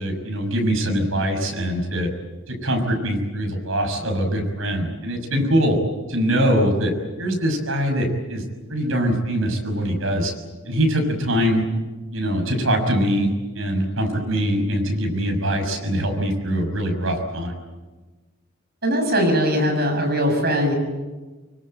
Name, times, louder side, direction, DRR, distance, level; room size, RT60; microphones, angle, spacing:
voice 1, 0.0-2.1 2.5-5.8 6.1-6.9 7.2-8.4 8.7-10.3 10.7-11.6 12.1-17.5, equal, 70° right, 3 dB, 6.3 m, -23 dB
voice 2, 18.8-20.8, equal, 50° right, 3 dB, 7.1 m, -20 dB
24.5 x 23.5 x 9.0 m, 1.2 s
head